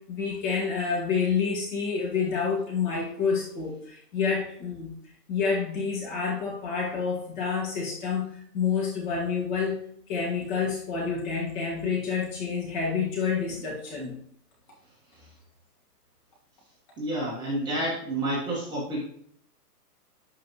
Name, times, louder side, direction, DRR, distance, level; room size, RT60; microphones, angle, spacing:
voice 1, 0.1-4.9 5.3-9.8 10.1-14.2, left 5 dB, 30° left, -1 dB, 1.8 m, -28 dB
voice 2, 17.0-19.1, right 1 dB, 10° right, -6 dB, 1.6 m, -29 dB
11.5 x 5.1 x 3.1 m, 0.64 s
hypercardioid pair, 155°, 49 cm